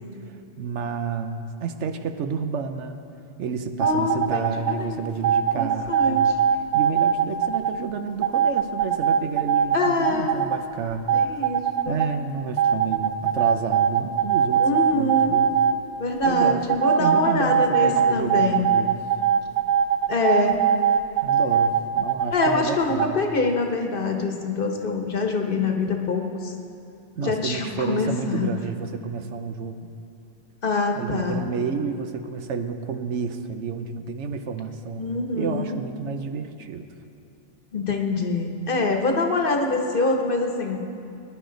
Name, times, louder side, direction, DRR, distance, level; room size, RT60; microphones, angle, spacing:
voice 1, 0.6-3.0 3.4-6.4 6.7-11.1 11.9-15.5 16.2-18.9 21.2-23.2 27.2-29.8 31.0-35.0 35.4-36.9, right 5 dB, 80° right, 8 dB, 1.1 m, -30 dB
voice 2, 3.8-5.2 5.5-6.3 9.7-10.3 11.1-12.0 14.6-15.4 16.0-18.7 20.1-20.6 22.3-26.5 27.2-28.5 30.6-31.4 35.0-35.8 37.7-40.9, left 3 dB, 50° left, 3 dB, 1.2 m, -25 dB
sound 1, 3.8-4.7 5.2-7.7 8.2-10.6 10.9-12.1 12.6-15.7 16.2-22.5 23.0-23.1, right 8 dB, 55° right, 0.5 m, -21 dB
21.0 x 10.5 x 3.9 m, 2.7 s
omnidirectional pair, 1.2 m